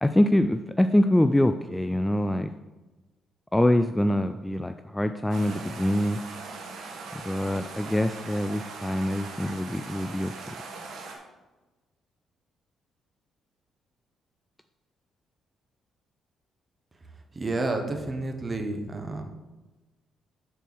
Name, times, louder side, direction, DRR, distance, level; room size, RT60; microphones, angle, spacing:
voice 1, 0.0-2.5 3.5-6.2 7.1-10.5, left 1 dB, 10° left, 9 dB, 0.3 m, -24 dB
sound 1, 5.3-11.1, right 4 dB, 80° right, 1.5 m, -40 dB
voice 2, 17.3-19.2, right 2 dB, 30° right, 4 dB, 1.2 m, -30 dB
6.9 x 4.6 x 6.1 m, 1.2 s
cardioid pair, 90°, 0 cm